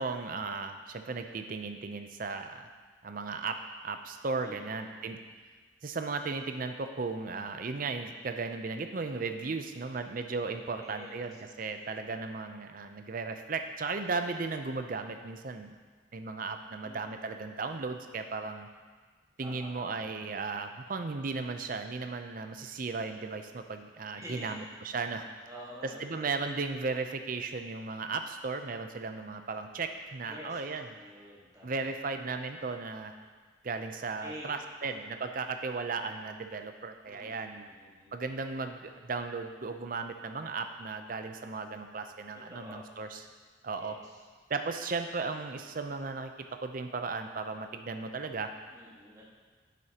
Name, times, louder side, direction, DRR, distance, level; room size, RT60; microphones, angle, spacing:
voice 1, 0.0-2.7 3.0-3.6 3.8-5.2 5.8-15.7 16.1-18.7 19.4-25.3 26.0-30.9 31.6-33.1 33.6-37.6 38.1-43.2 43.6-44.0 44.5-48.5, right 4 dB, 45° right, 7 dB, 0.5 m, -36 dB
voice 2, 4.4-5.0 10.7-11.2 11.8-12.2 16.8-17.2 19.4-20.3 24.1-24.6 25.5-26.3 30.3-30.6 30.9-31.8 34.2-34.5 34.8-35.1 37.1-38.3 42.5-42.8 43.7-44.2 48.7-49.2, equal, 20° right, -5 dB, 1.5 m, -48 dB
9.2 x 8.0 x 2.9 m, 1.4 s
head